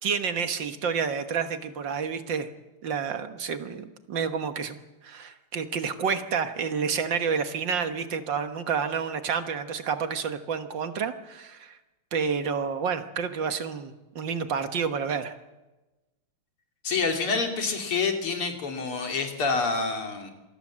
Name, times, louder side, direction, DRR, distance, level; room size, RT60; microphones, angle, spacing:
voice 1, 0.0-2.5 2.8-4.8 5.0-11.8 12.1-15.4, right 6 dB, 60° right, 9 dB, 2.0 m, -29 dB
voice 2, 16.8-20.3, left 4 dB, 85° left, 3 dB, 3.8 m, -27 dB
26.0 x 19.5 x 7.5 m, 1.1 s
omnidirectional pair, 2.4 m